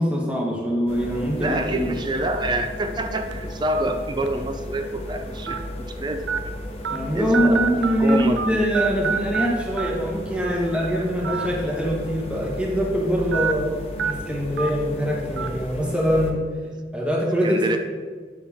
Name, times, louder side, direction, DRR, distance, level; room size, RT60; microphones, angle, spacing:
voice 1, 0.0-1.9 6.9-13.7 14.0-16.4 16.9-17.8, equal, 5° right, -2 dB, 1.4 m, -23 dB
sound 1, 0.9-16.3, left 1 dB, 35° left, 1.0 m, -35 dB
voice 2, 1.4-6.4 7.1-8.6 13.4-13.5 17.4-17.8, right 1 dB, 25° right, 6 dB, 0.4 m, -27 dB
sound 2, 3.3-3.5 4.3-4.4 5.5-5.6 6.3-6.4 6.8-7.0 7.3-8.5 8.7-9.5 9.8-9.9 11.2-11.5 11.8-11.9 13.3-13.5 14.0-14.1 14.6-14.7 15.4-15.5, right 6 dB, 80° right, 0.5 m, -25 dB
8.5 x 6.9 x 3.6 m, 1.6 s
head